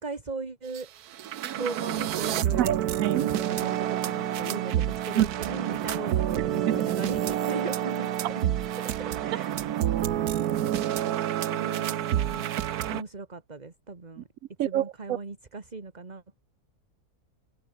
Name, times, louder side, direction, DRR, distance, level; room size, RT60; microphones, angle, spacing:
voice 1, 0.0-0.9 1.6-2.8 3.1-8.5 9.0-9.5 11.5-12.5 12.9-14.3 14.6-16.4, right 3 dB, 30° right, 1.9 m, -38 dB
sound 1, 0.7-0.8 1.1-13.0, right 11 dB, 90° right, 1.4 m, -28 dB
voice 2, 2.6-3.2 5.2-5.3 6.7-6.8 14.6-14.8, right 13 dB, 70° right, 1.0 m, -24 dB
omnidirectional pair, 1.6 m